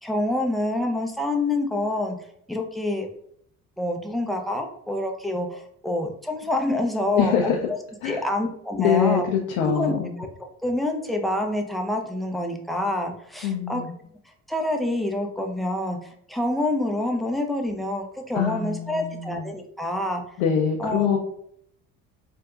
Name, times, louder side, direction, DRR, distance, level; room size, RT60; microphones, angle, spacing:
voice 1, 0.0-2.2 2.5-3.1 3.8-7.8 8.0-9.3 9.6-10.3 10.6-13.8 14.5-16.0 16.3-20.2 20.8-21.2, left 1 dB, ahead, 3 dB, 0.4 m, -27 dB
voice 2, 7.2-7.6 8.0-8.2 8.8-10.1 13.4-13.9 18.3-19.5 20.4-21.2, left 8 dB, 65° left, 0 dB, 0.6 m, -24 dB
3.5 x 2.7 x 2.3 m, 0.68 s
figure-of-eight pair, 55°, 42 cm